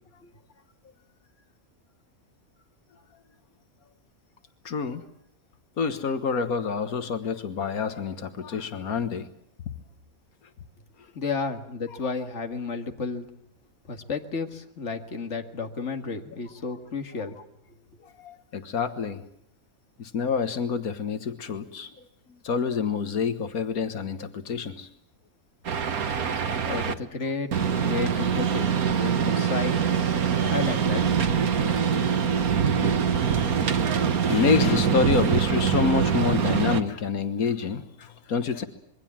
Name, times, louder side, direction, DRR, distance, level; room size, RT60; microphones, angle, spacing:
voice 1, 4.7-5.0 5.8-9.3 18.0-19.2 20.0-21.9 22.4-24.9 26.3-26.8 30.2-30.5 31.5-31.6 34.3-38.7, left 5 dB, 90° left, 9 dB, 1.9 m, -27 dB
voice 2, 11.1-13.3 13.9-17.4 26.7-27.5 27.8-29.8 30.5-31.1, left 4 dB, 55° left, 5 dB, 2.2 m, -32 dB
sound 1, 25.6-26.9 27.5-36.8, right 7 dB, 85° right, 1.8 m, -24 dB
26.5 x 22.5 x 7.4 m, 0.75 s
omnidirectional pair, 1.5 m